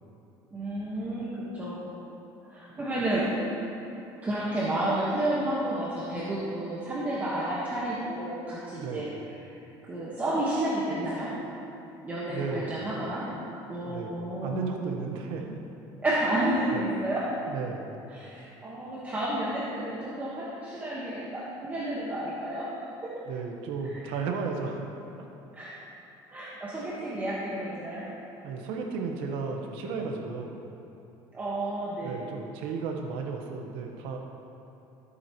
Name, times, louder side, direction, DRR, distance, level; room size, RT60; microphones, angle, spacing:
voice 1, 0.5-1.9 2.5-3.4 4.2-9.1 9.9-11.3 12.0-13.3 13.7-14.8 16.0-17.3 18.1-22.7 23.9-24.1 25.5-25.8 26.3-28.0 31.3-32.2, right 1 dB, 20° right, -7 dB, 1.4 m, -31 dB
voice 2, 8.8-9.1 12.3-12.8 13.9-14.1 14.4-15.6 16.7-16.8 17.5-17.9 23.3-24.8 28.4-30.6 32.0-34.2, right 5 dB, 75° right, 2 dB, 1.2 m, -34 dB
14.5 x 8.3 x 3.1 m, 2.9 s
cardioid pair, 150°, 9 cm